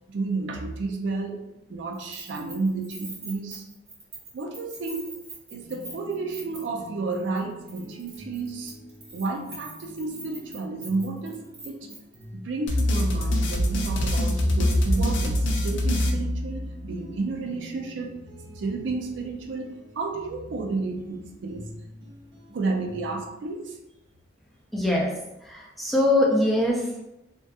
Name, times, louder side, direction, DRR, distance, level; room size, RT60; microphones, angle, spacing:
voice 1, 0.1-1.4 1.7-3.6 4.3-5.1 5.5-8.7 9.1-11.4 11.6-11.9 12.3-18.1 18.5-21.7 22.5-23.8, right 3 dB, 70° right, 2 dB, 0.4 m, -31 dB
Keys jangling, 1.9-6.9 7.1-7.4 7.7-12.2, right 3 dB, 30° right, 0.7 m, -43 dB
sound 1, 5.6-23.2, equal, 85° right, 0.9 m, -47 dB
sound 2, 12.7-16.9, left 1 dB, 75° left, 0.4 m, -24 dB
voice 2, 24.7-25.1 25.4-27.0, left 1 dB, ahead, -3 dB, 0.3 m, -23 dB
2.6 x 2.1 x 2.3 m, 0.91 s
head